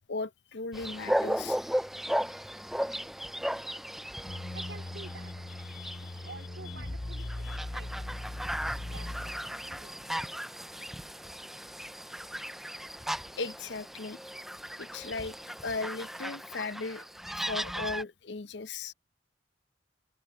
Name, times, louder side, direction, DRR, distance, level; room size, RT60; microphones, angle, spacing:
voice 1, 0.1-1.6 5.7-6.2 7.2-7.6 13.4-14.2 14.8-15.4 15.6-17.1 17.3-18.9, left 3 dB, 75° left, 0.7 m, -37 dB
sound 1, 0.7-18.0, equal, ahead, 0.5 m, -36 dB
sound 2, 4.2-9.7, left 1 dB, 35° left, 0.9 m, -40 dB
voice 2, 4.5-5.3 6.0-8.1 8.6-9.3 9.6-10.0, right 3 dB, 85° right, 2.8 m, -50 dB
open air
head